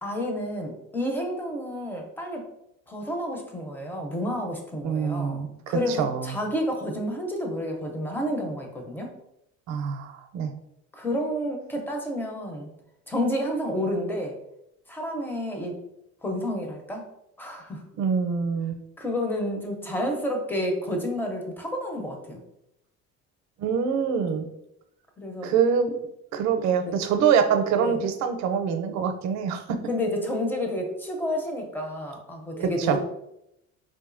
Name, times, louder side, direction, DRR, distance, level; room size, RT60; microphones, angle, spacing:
voice 1, 0.0-2.4 2.9-5.4 5.7-9.1 10.9-12.7 13.1-14.3 14.9-15.8 16.2-17.0 17.4-17.8 19.0-22.4 25.2-25.5 26.9-27.0 27.8-28.0 29.9-33.0, equal, 5° left, 2 dB, 0.5 m, -30 dB
voice 2, 4.8-6.4 9.7-10.5 18.0-18.8 23.6-24.4 25.4-25.9 26.3-29.8 32.5-33.0, right 7 dB, 65° right, 6 dB, 0.5 m, -25 dB
3.9 x 2.6 x 2.4 m, 0.81 s
cardioid pair, 140°, 29 cm